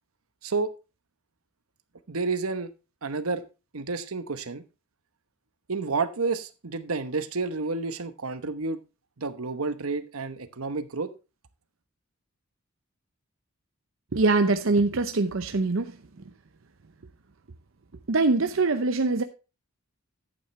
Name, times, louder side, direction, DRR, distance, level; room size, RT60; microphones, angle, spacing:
voice 1, 2.1-2.7 3.0-3.4 3.7-4.6 5.7-8.8 9.2-11.1, right 4 dB, 85° right, 1.1 m, -30 dB
voice 2, 14.1-15.9 18.1-19.2, right 3 dB, 65° right, 0.7 m, -23 dB
11.0 x 8.7 x 3.2 m
head